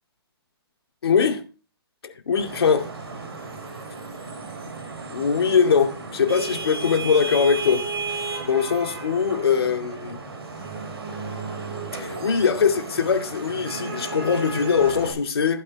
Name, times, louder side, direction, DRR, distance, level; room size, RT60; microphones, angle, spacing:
voice 1, 1.0-1.4 2.0-2.8 5.1-10.2 11.9-15.6, left 6 dB, 70° left, 2.3 m, -22 dB
Vehicle horn car horn honking / Traffic noise roadway noise, 2.4-15.1, right 3 dB, 70° right, 5.4 m, -34 dB
15.0 x 9.4 x 3.4 m
hypercardioid pair, 130°, 13 cm